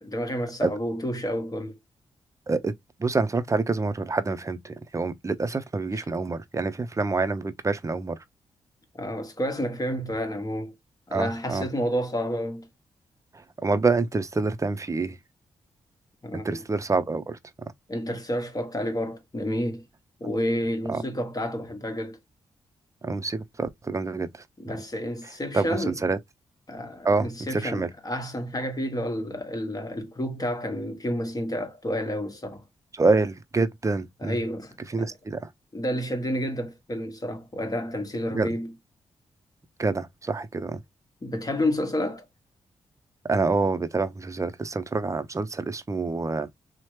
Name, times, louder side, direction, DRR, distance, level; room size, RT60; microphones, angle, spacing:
voice 1, 0.0-1.7 9.0-10.7 11.1-12.7 16.2-16.6 17.9-19.9 20.2-22.2 24.6-26.0 26.7-32.6 34.2-35.1 35.7-38.7 41.2-42.3, equal, 30° left, 1.1 m, -30 dB
voice 2, 3.0-8.2 11.1-11.7 13.3-15.2 16.3-17.4 20.9-21.0 23.0-24.4 25.5-26.2 27.0-27.9 32.9-34.4 34.9-35.5 38.3-38.5 39.8-40.8 43.2-46.5, right 3 dB, 25° right, 0.5 m, -27 dB
2.8 x 2.1 x 3.2 m
supercardioid pair, 45°, 13 cm